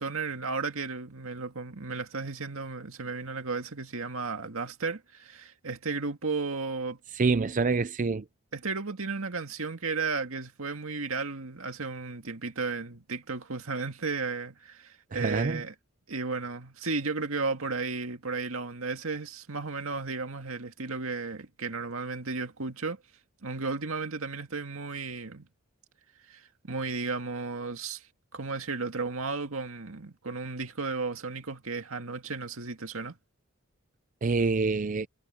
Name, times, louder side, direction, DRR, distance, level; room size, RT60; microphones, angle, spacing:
voice 1, 0.0-7.0 8.5-15.7 16.1-23.0 23.4-25.5 26.3-28.1 28.3-33.2, right 4 dB, 80° right, 2.0 m, -34 dB
voice 2, 7.1-8.2 15.1-15.6 34.2-35.1, right 4 dB, 40° right, 0.5 m, -26 dB
head